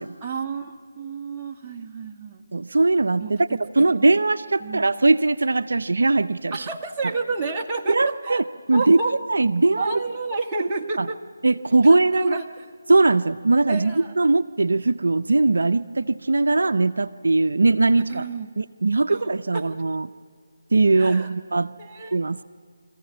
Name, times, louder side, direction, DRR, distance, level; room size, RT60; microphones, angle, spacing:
voice 1, 0.2-2.4 3.2-4.1 4.6-4.9 6.5-8.4 8.7-9.1 9.8-11.2 11.8-12.6 13.7-14.1 18.1-18.5 19.1-19.2 19.5-19.6 21.0-21.3 21.8-22.2, right 3 dB, 20° right, -2 dB, 1.5 m, -30 dB
voice 2, 2.5-3.5 3.7-6.7 7.9-10.0 11.0-11.1 11.4-12.4 12.9-18.3 18.6-20.1 20.7-21.7 22.1-22.4, right 3 dB, 75° right, 11 dB, 0.6 m, -20 dB
25.5 x 15.0 x 9.6 m, 2.1 s
figure-of-eight pair, 160°, 0 cm